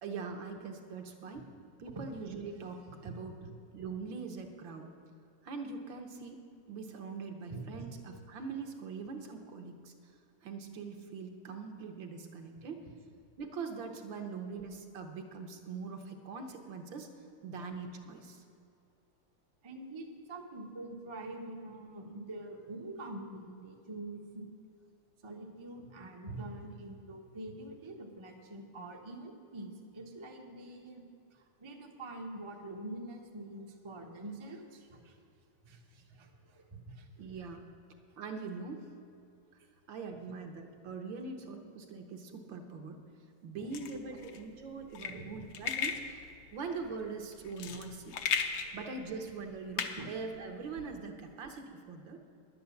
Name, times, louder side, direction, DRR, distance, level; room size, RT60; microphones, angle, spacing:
voice 1, 0.0-1.5 1.8-3.3 3.7-4.9 5.4-9.9 10.4-12.8 13.4-17.1 17.4-18.4 37.2-37.6 38.2-38.9 39.9-43.0 43.4-46.2 46.5-48.2 48.7-52.2, right 4 dB, 65° right, 4 dB, 1.7 m, -42 dB
voice 2, 3.0-3.5 7.5-7.9 12.9-13.0 19.6-24.5 25.2-31.0 31.3-35.2 35.6-37.1 43.6-43.8 45.0-45.3 48.7-48.8 50.0-50.1, right 2 dB, 25° right, 1 dB, 0.6 m, -45 dB
sound 1, 43.7-50.9, left 6 dB, 65° left, 1.3 m, -37 dB
10.5 x 9.2 x 7.0 m, 2.6 s
omnidirectional pair, 2.4 m